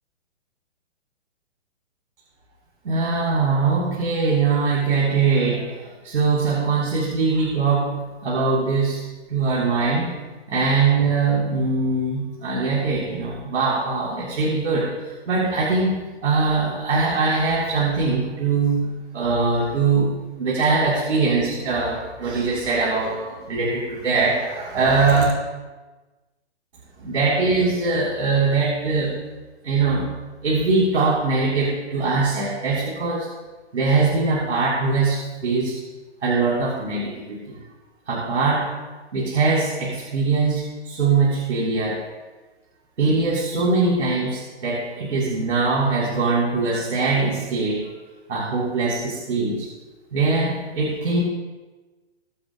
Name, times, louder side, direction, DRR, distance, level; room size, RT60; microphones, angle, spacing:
voice 1, 2.8-10.2 10.5-25.2 27.0-29.1 29.6-33.3 33.7-35.8 36.2-37.6 38.1-38.8 39.1-42.0 43.0-47.9 48.3-49.7 50.1-51.2, right 4 dB, 80° right, -5 dB, 3.7 m, -22 dB
22.5 x 7.7 x 2.2 m, 1.2 s
hypercardioid pair, 175°, 35 cm